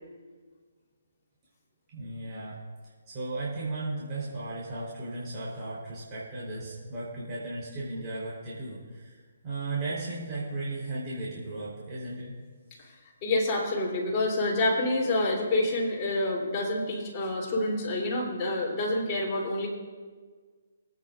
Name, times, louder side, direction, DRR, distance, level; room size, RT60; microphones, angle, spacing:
voice 1, 1.9-9.2 9.4-12.3, right 2 dB, 25° right, -8 dB, 3.9 m, -36 dB
voice 2, 13.2-19.7, left 2 dB, 25° left, -4 dB, 3.3 m, -27 dB
23.5 x 9.0 x 2.5 m, 1.5 s
hypercardioid pair, 150°, 0 cm